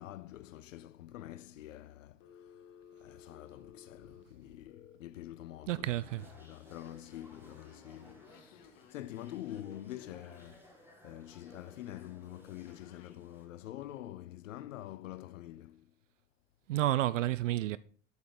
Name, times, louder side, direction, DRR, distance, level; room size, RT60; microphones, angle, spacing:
voice 1, 0.0-15.9, left 14 dB, 70° left, 0.5 m, -47 dB
Telephone, 2.2-5.0 5.7-6.3 6.8-10.6 12.7-13.2, left 7 dB, 50° left, 1.6 m, -58 dB
voice 2, 5.7-6.2 16.7-17.8, right 14 dB, 70° right, 0.5 m, -30 dB
sound 1, 5.8-13.5, equal, 5° right, 3.4 m, -60 dB
9.6 x 8.4 x 4.9 m
figure-of-eight pair, 65°, 40 cm